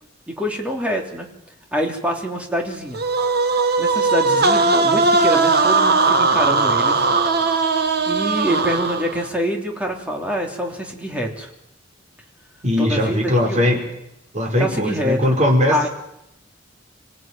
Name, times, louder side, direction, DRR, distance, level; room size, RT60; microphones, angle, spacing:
voice 1, 0.3-1.3 1.7-3.0 3.8-7.1 7.5-7.6 8.1-11.5 12.8-13.6 14.6-15.4 15.7-15.9, equal, 5° right, 1 dB, 3.3 m, -25 dB
sound 1, 2.9-9.3, right 3 dB, 55° right, 1.8 m, -18 dB
voice 2, 12.6-13.8 14.3-15.9, left 1 dB, 35° right, 1 dB, 5.5 m, -19 dB
26.0 x 17.0 x 9.1 m, 0.81 s
head